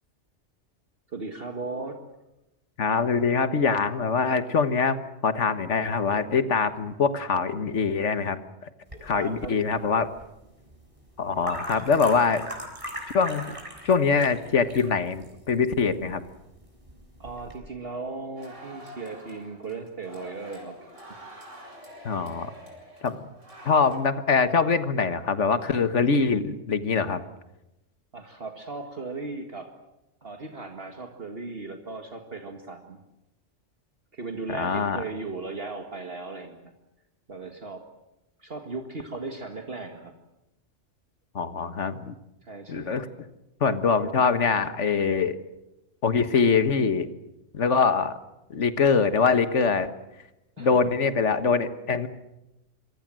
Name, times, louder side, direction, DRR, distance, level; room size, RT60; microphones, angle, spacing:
voice 1, 1.1-2.0 9.1-9.6 17.2-21.2 28.1-29.7 30.2-33.0 34.1-36.7 37.3-37.8 38.4-40.1 42.4-43.0 50.6-50.9, right 3 dB, 50° right, 4 dB, 2.1 m, -37 dB
voice 2, 2.8-8.4 9.0-10.1 11.2-12.5 13.1-13.5 13.8-16.2 22.1-22.5 23.0-23.3 23.7-27.2 34.5-35.0 41.4-42.2 42.7-43.1 43.6-45.4 46.0-47.1 47.5-48.1 48.5-49.9 50.6-52.1, left 5 dB, 75° left, 11 dB, 1.7 m, -23 dB
sound 1, 8.9-17.6, equal, 25° right, 6.4 m, -41 dB
sound 2, 18.3-24.0, equal, 80° right, 7.0 m, -46 dB
26.5 x 24.5 x 7.6 m, 0.97 s
omnidirectional pair, 1.2 m